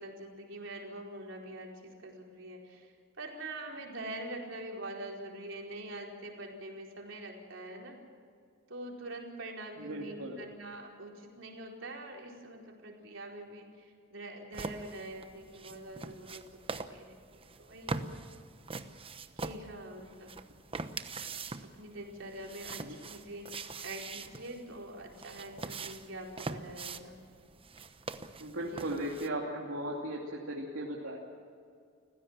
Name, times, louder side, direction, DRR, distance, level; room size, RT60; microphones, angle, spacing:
voice 1, 0.0-7.9 8.7-18.0 19.4-20.3 21.6-27.2 28.6-28.9, right 1 dB, 65° right, 0 dB, 4.6 m, -44 dB
voice 2, 9.8-10.4 22.8-23.0 28.4-31.2, right 1 dB, 85° right, -3 dB, 2.7 m, -37 dB
sound 1, 14.5-29.3, right 3 dB, 30° right, 0.9 m, -43 dB
29.5 x 16.0 x 7.5 m, 2.3 s
head